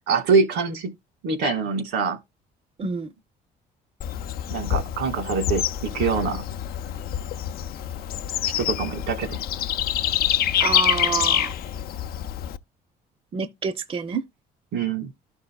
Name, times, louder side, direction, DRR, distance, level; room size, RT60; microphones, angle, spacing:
voice 1, 0.1-0.9 1.2-2.2 4.5-6.4 8.6-9.4 14.7-15.1, right 5 dB, 85° right, 1.7 m, -24 dB
voice 2, 2.8-3.1 10.6-11.5 13.3-14.3, right 6 dB, 35° right, 0.6 m, -27 dB
Bird / Insect, 4.0-12.6, left 11 dB, 60° left, 0.5 m, -26 dB
13.0 x 5.4 x 2.3 m
cardioid pair, 110°, 17 cm